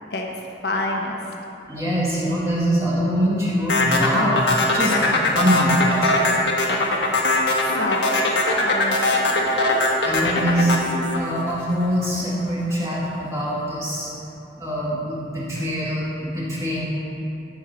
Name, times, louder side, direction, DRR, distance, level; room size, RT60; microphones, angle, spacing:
voice 1, 0.6-1.2 7.6-9.8, left 1 dB, 60° left, 0 dB, 1.0 m, -28 dB
voice 2, 1.7-6.2 10.0-10.7 11.1-14.1 14.6-16.8, equal, 15° right, -7 dB, 1.8 m, -23 dB
sound 1, 3.7-12.1, left 2 dB, 90° left, 1.3 m, -21 dB
13.5 x 4.7 x 5.8 m, 2.9 s
head